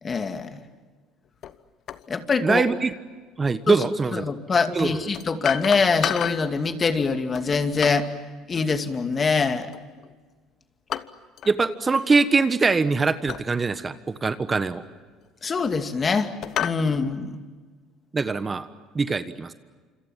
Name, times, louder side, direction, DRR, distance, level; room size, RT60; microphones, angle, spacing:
voice 1, 0.0-0.6 2.1-2.6 3.7-3.9 4.1-8.1 8.5-9.7 15.4-17.4, left 4 dB, 35° left, 7 dB, 2.4 m, -24 dB
sound 1, 1.4-1.6 1.9-2.1 3.8-3.9 5.1-6.5 7.3-8.1 9.7-10.1 10.9-11.5 11.8-12.1 13.3-13.5 14.1-14.2 15.1-15.9 16.4-16.9, left 10 dB, 55° left, 1.1 m, -31 dB
voice 2, 2.4-2.9 3.4-4.3 4.7-5.0 11.5-13.9 14.2-14.8 18.1-18.7 18.9-19.5, right 4 dB, 25° right, 12 dB, 1.3 m, -22 dB
27.5 x 26.0 x 7.5 m, 1.4 s
supercardioid pair, 80°, 0 cm